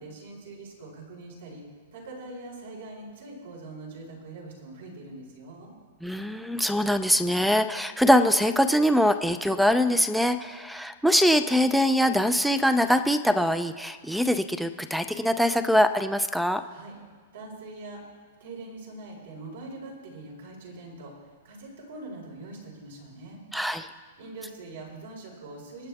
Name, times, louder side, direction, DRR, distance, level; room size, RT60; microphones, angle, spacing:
voice 1, 0.0-1.6 1.9-5.7 16.7-17.0 17.3-18.0 18.4-23.4 24.2-25.9, right 2 dB, 75° right, -2 dB, 4.6 m, -43 dB
voice 2, 6.0-16.6 23.5-23.9, equal, ahead, 11 dB, 0.4 m, -23 dB
26.0 x 8.9 x 3.5 m, 1.5 s
supercardioid pair, 160°, 0 cm